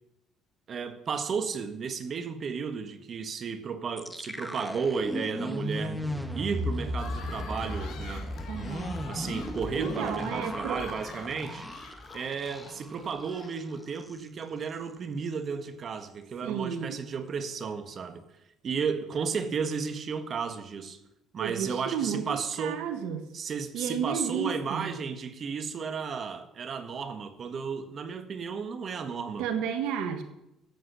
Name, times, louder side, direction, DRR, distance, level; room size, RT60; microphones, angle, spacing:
voice 1, 0.7-6.0 6.4-8.3 9.1-11.7 12.1-18.2 18.6-21.0 21.3-22.9 23.3-29.5, right 5 dB, 45° right, 9 dB, 1.6 m, -33 dB
sound 1, 4.0-13.0 13.3-13.5 13.8-14.2, equal, ahead, 1.6 m, -35 dB
sound 2, 6.9-13.9, left 6 dB, 70° left, 2.9 m, -47 dB
voice 2, 8.5-9.0 9.8-10.8 16.4-17.0 21.4-23.3 23.7-24.9 29.4-30.2, right 8 dB, 80° right, 7 dB, 1.4 m, -32 dB
14.5 x 7.8 x 8.2 m, 0.85 s
supercardioid pair, 85°, 0 cm